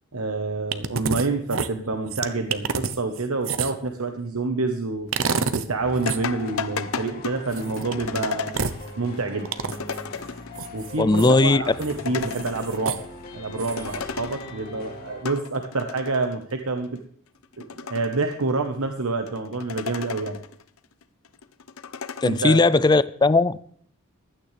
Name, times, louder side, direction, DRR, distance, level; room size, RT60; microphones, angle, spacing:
voice 1, 0.1-5.1 5.5-8.6 9.0-9.5 10.7-13.0 13.3-17.0 17.6-20.4 22.2-22.8, right 3 dB, 85° right, 1.2 m, -27 dB
sound 1, 0.7-1.3 1.5-3.9 5.1-5.7 6.0-6.2 7.5-7.9 8.5-8.8 9.4-10.0 10.6-11.3 11.8-11.9 12.3-13.0 13.6-14.0, right 5 dB, 65° right, 0.8 m, -28 dB
sound 2, 5.8-15.3, left 1 dB, 45° left, 2.3 m, -41 dB
sound 3, 6.0-10.7 11.0-11.1 11.3-13.1 13.3-14.7 15.1-16.3 16.8-17.0 17.4-18.7 19.3-20.6 21.0-22.5, left 6 dB, 75° left, 0.8 m, -34 dB
voice 2, 11.0-11.6 22.2-23.6, left 3 dB, 20° left, 0.4 m, -18 dB
16.0 x 11.5 x 3.4 m
head